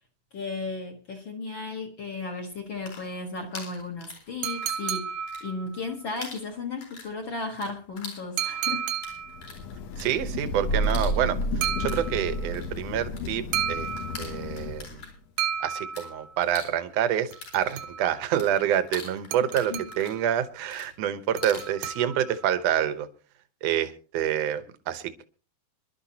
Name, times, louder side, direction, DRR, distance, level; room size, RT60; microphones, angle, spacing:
voice 1, 0.3-8.9 19.7-19.8, left 3 dB, 45° left, 2 dB, 1.8 m, -35 dB
sound 1, 2.6-4.9 5.2-5.9 6.2-16.1 16.4-21.7, left 4 dB, 60° left, 5.6 m, -44 dB
sound 2, 4.4-5.9 8.4-9.5 11.6-12.5 13.5-14.6 15.4-16.4 17.3-18.3 19.3-20.2 21.4-22.5, right 9 dB, 85° right, 2.6 m, -33 dB
Thunder / Rain, 9.3-15.1, equal, 75° left, 1.5 m, -31 dB
voice 2, 10.0-13.9 14.2-15.0 15.6-23.1 23.6-25.2, right 10 dB, 65° right, 11 dB, 1.7 m, -27 dB
25.0 x 11.5 x 2.9 m, 0.35 s
omnidirectional pair, 4.0 m